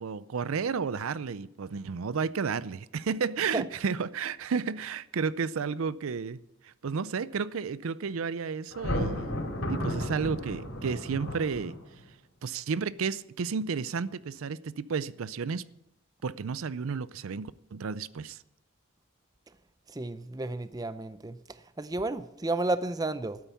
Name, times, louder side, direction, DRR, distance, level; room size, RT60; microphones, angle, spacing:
voice 1, 0.0-6.4 6.6-9.3 9.7-11.8 12.4-15.7 16.2-18.4, right 5 dB, 75° right, 0.5 m, -32 dB
Thunder, 8.7-12.0, equal, 70° left, 4.1 m, -33 dB
voice 2, 19.9-21.4 21.8-23.4, right 2 dB, 15° right, 0.5 m, -32 dB
12.5 x 9.1 x 8.3 m
head